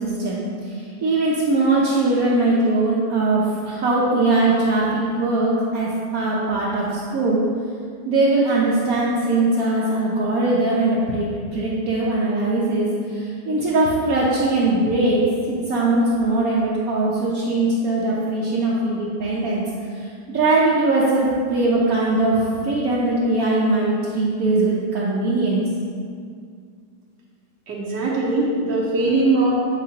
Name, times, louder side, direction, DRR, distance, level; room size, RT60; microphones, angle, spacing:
voice 1, 0.0-7.4 8.0-11.3 11.5-15.2 15.5-19.6 20.0-25.6, right 2 dB, 65° right, -6 dB, 1.1 m, -21 dB
voice 2, 27.7-29.5, right 2 dB, 85° right, -4 dB, 1.5 m, -20 dB
8.1 x 4.5 x 2.8 m, 2.2 s
omnidirectional pair, 1.8 m